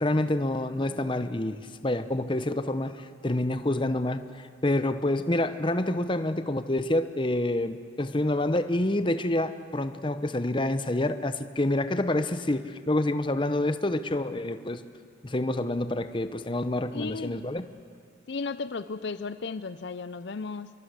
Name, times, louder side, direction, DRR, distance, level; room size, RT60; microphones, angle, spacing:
voice 1, 0.0-14.8 15.2-17.6, left 1 dB, 25° left, 11 dB, 0.9 m, -27 dB
voice 2, 16.9-17.4 18.3-20.7, left 4 dB, 60° left, 14 dB, 0.5 m, -34 dB
26.0 x 23.0 x 8.2 m, 2.2 s
head